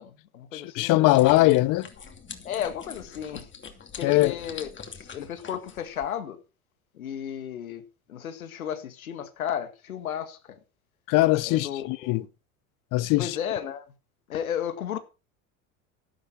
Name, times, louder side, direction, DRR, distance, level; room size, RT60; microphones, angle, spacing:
voice 1, 0.0-0.9 1.2-1.5 2.4-3.5 4.0-4.7 5.0-6.4 6.9-10.6 11.5-12.2 13.2-13.9 14.3-15.0, left 9 dB, 90° left, 2.0 m, -34 dB
voice 2, 0.5-1.9 4.0-4.4 11.1-12.2 12.9-13.4, left 18 dB, 50° left, 0.9 m, -21 dB
sound 1, 1.1-6.1, left 6 dB, 30° left, 2.7 m, -44 dB
11.5 x 11.5 x 4.5 m
hypercardioid pair, 90°, 41 cm